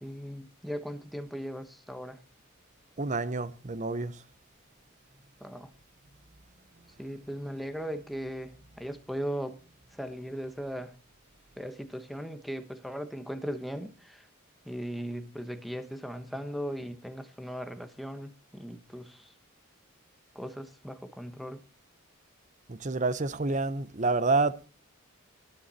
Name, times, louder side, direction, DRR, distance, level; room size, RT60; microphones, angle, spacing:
voice 1, 0.0-2.2 5.4-5.7 7.0-9.6 9.9-10.9 11.6-14.3 14.6-19.3 20.3-21.6, equal, ahead, 1.1 m, -38 dB
voice 2, 3.0-4.1 22.7-24.6, right 3 dB, 35° right, 0.8 m, -28 dB
18.5 x 7.2 x 4.1 m
head